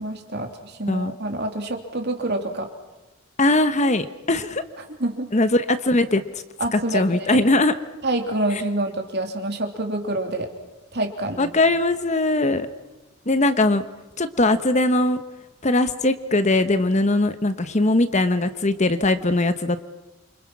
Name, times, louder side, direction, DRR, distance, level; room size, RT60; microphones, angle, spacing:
voice 1, 0.0-2.7 4.8-5.3 6.6-7.5 8.0-10.5 10.9-11.5, right 2 dB, 50° right, 5 dB, 2.9 m, -27 dB
voice 2, 3.4-4.6 5.3-6.2 6.7-7.7 11.4-12.7 13.3-13.8 14.2-15.2 15.6-19.8, left 2 dB, 30° left, 11 dB, 1.0 m, -20 dB
28.5 x 25.5 x 6.0 m, 1.1 s
head